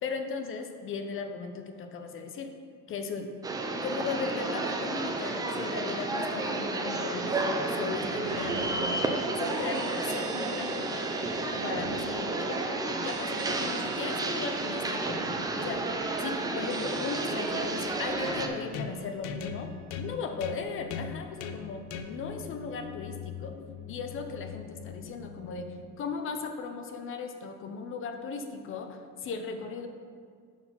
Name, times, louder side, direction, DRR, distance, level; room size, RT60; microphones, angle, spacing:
voice 1, 0.0-2.5 2.9-3.3 3.8-9.1 9.3-11.1 11.6-15.2 15.6-15.9 16.2-19.7 20.0-21.8 22.1-23.5 23.9-25.7 26.0-29.9, left 5 dB, 35° left, 6 dB, 0.5 m, -37 dB
sound 1, 3.4-18.5, right 2 dB, 10° right, 0.3 m, -31 dB
sound 2, 8.2-19.8, right 7 dB, 80° right, 0.7 m, -44 dB
sound 3, 18.2-26.0, left 6 dB, 90° left, 0.6 m, -41 dB
5.5 x 4.7 x 5.6 m, 2.1 s
cardioid pair, 140°, 36 cm